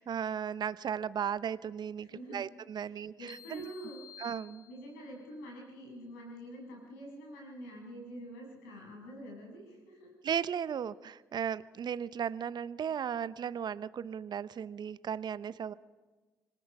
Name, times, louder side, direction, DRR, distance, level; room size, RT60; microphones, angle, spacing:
voice 1, 0.0-3.7 4.2-4.7 10.2-15.7, right 8 dB, 50° right, 16 dB, 0.8 m, -36 dB
voice 2, 2.1-2.4 2.9-4.0 4.7-10.1, equal, 85° left, 0 dB, 6.9 m, -46 dB
sound 1, 3.3-5.2, left 8 dB, 50° left, 1.0 m, -52 dB
26.5 x 19.0 x 6.1 m, 1.3 s
hypercardioid pair, 45°, 10 cm